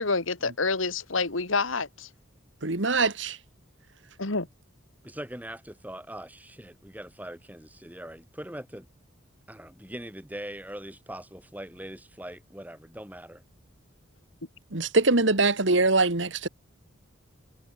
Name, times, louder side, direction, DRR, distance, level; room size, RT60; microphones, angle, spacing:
voice 1, 0.0-2.1 4.2-4.5, left 3 dB, 80° left, 2.3 m, -28 dB
voice 2, 2.6-3.4 14.7-16.5, right 3 dB, 65° right, 2.1 m, -23 dB
voice 3, 5.0-8.9 9.5-13.4, right 1 dB, 10° right, 5.5 m, -41 dB
head